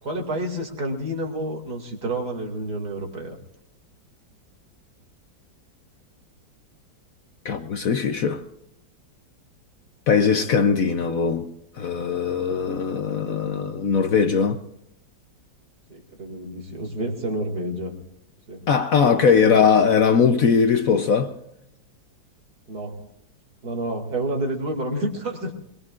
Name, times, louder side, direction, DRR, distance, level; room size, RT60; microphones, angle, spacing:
voice 1, 0.0-3.4 12.3-12.5 15.9-18.0 18.5-18.7 19.2-19.7 22.7-23.1 23.6-25.5, right 1 dB, 60° right, 3.0 m, -29 dB
voice 2, 7.4-8.4 10.1-11.5 11.8-14.6 18.7-21.3, left 6 dB, 60° left, 1.0 m, -20 dB
22.0 x 21.5 x 2.5 m
omnidirectional pair, 2.0 m